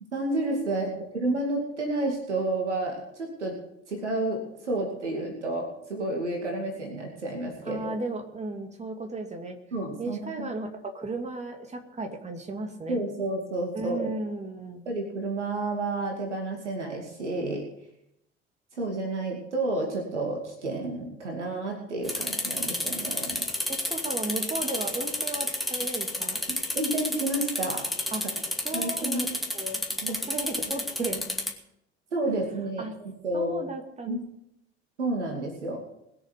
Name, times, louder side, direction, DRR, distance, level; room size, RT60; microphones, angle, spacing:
voice 1, 0.1-3.6 3.9-8.0 9.7-10.5 12.9-14.1 14.9-17.6 18.8-23.4 26.5-27.8 28.7-29.4 30.0-30.2 31.0-31.1 32.1-33.7 34.1-34.2 35.0-35.8, right 2 dB, 80° right, 1 dB, 2.6 m, -30 dB
voice 2, 7.6-9.6 10.0-13.0 13.7-14.9 23.7-26.4 28.1-28.3 28.6-29.3 29.5-29.8 30.1-31.3 32.8-32.9 33.3-34.2, right 2 dB, 20° right, 4 dB, 2.6 m, -35 dB
sound 1, 22.0-31.5, left 1 dB, ahead, 2.4 m, -31 dB
21.5 x 7.2 x 6.8 m, 0.80 s
figure-of-eight pair, 65°, 35 cm